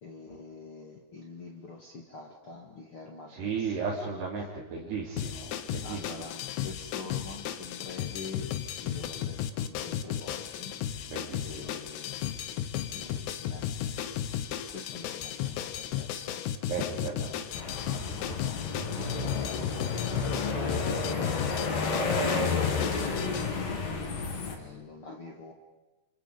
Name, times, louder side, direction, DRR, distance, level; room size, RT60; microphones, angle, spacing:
voice 1, 0.0-3.9 5.8-8.5 8.8-10.8 11.4-12.2 12.9-14.0 14.7-16.4 16.8-18.6 18.9-23.9 24.4-25.5, left 4 dB, 40° left, 0 dB, 2.1 m, -46 dB
voice 2, 3.3-6.3 11.0-11.7 16.7-17.3, right 5 dB, 70° right, -7 dB, 5.7 m, -35 dB
sound 1, 5.2-23.5, left 10 dB, 85° left, 3.4 m, -35 dB
sound 2, 17.5-24.6, left 4 dB, 70° left, 4.9 m, -31 dB
29.5 x 27.5 x 5.1 m, 1.1 s
omnidirectional pair, 4.9 m